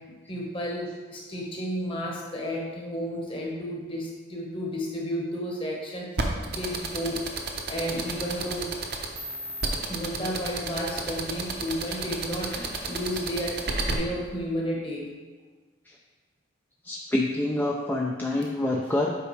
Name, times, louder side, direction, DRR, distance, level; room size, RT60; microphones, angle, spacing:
voice 1, 0.3-8.7 9.9-15.1, equal, 25° left, -2 dB, 1.1 m, -32 dB
sound 1, 6.2-13.9, right 4 dB, 50° right, 0.7 m, -30 dB
voice 2, 16.8-19.2, left 1 dB, 10° left, -2 dB, 0.3 m, -26 dB
8.1 x 5.0 x 3.2 m, 1.4 s
head